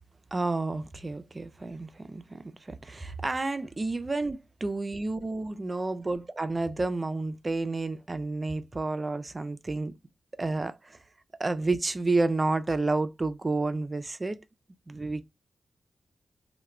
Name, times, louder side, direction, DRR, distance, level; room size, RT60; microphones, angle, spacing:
voice 1, 0.3-9.9 10.3-11.0 11.4-14.4 14.9-15.2, right 3 dB, 35° right, 0.4 m, -30 dB
2.3 x 2.1 x 3.0 m
supercardioid pair, 45°, 0 cm